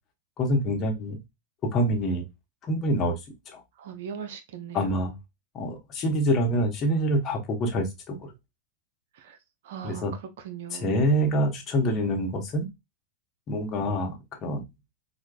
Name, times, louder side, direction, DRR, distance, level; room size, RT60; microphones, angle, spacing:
voice 1, 0.4-1.2 1.7-2.2 2.7-3.1 4.7-5.1 5.5-8.2 9.8-10.1 10.7-12.7 13.5-14.2 14.4-14.6, equal, 30° left, 1.0 m, -25 dB
voice 2, 3.8-4.9 9.1-9.4 9.6-10.9, right 8 dB, 55° right, 0.5 m, -39 dB
4.5 x 2.2 x 2.2 m
figure-of-eight pair, 90°, 0 cm